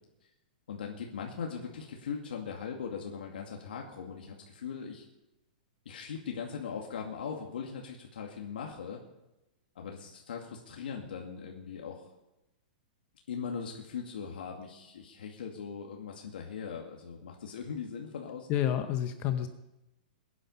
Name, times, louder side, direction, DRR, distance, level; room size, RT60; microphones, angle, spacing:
voice 1, 0.7-5.0 5.9-9.0 9.8-12.0 13.3-18.5, left 6 dB, 90° left, 0 dB, 2.3 m, -40 dB
voice 2, 18.5-19.5, left 11 dB, 30° left, 8 dB, 0.8 m, -29 dB
21.5 x 9.9 x 5.6 m, 0.96 s
hypercardioid pair, 165°, 5 cm